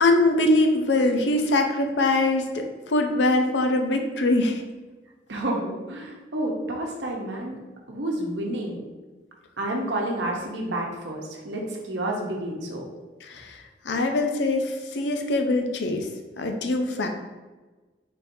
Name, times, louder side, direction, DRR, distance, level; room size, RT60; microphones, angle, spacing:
voice 1, 0.0-4.6 13.2-16.1 16.4-17.1, left 2 dB, 75° left, 5 dB, 0.5 m, -23 dB
voice 2, 5.3-7.6 7.9-8.8 9.6-12.8, right 1 dB, 75° right, 0 dB, 0.8 m, -30 dB
4.3 x 3.6 x 2.6 m, 1.2 s
head